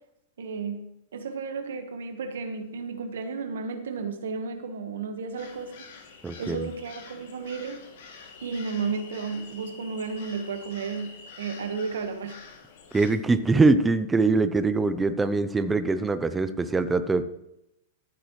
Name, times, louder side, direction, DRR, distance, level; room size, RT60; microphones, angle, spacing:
voice 1, 0.4-0.8 1.1-5.7 6.4-7.8 8.4-12.4, right 5 dB, 85° right, 6 dB, 1.4 m, -33 dB
sound 1, 5.4-13.1, left 5 dB, 65° left, 2.6 m, -47 dB
voice 2, 6.2-6.7 12.9-17.2, right 3 dB, 10° right, 11 dB, 0.6 m, -23 dB
14.5 x 8.4 x 3.2 m, 0.84 s
hypercardioid pair, 140°, 0 cm